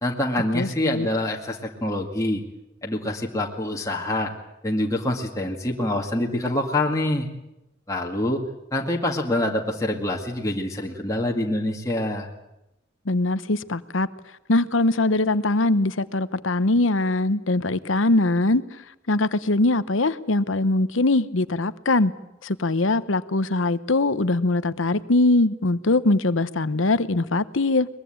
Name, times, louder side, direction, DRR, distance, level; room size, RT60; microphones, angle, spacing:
voice 1, 0.0-2.4 2.8-4.3 4.6-7.3 7.9-8.4 8.7-12.3, left 1 dB, 15° left, 2.1 m, -25 dB
voice 2, 0.5-1.1 13.1-14.1 14.5-18.6 19.1-22.1 22.4-27.9, left 2 dB, 70° left, 1.0 m, -22 dB
22.5 x 21.5 x 8.8 m
head